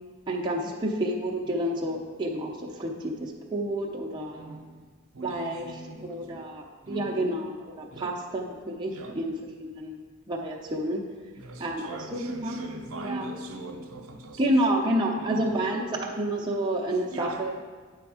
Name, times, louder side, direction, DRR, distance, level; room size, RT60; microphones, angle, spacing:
voice 1, 0.3-4.6 5.2-5.7 6.0-10.0 10.3-11.0 11.6-12.6 12.9-13.3 14.4-17.5, right 1 dB, 20° right, -2 dB, 0.7 m, -29 dB
voice 2, 4.3-4.8 5.1-6.5 6.8-7.2 7.9-8.1 8.9-9.2 11.3-14.6 15.2-15.6 16.9-17.4, right 2 dB, 70° right, 3 dB, 0.8 m, -40 dB
9.0 x 3.5 x 4.9 m, 1.5 s
head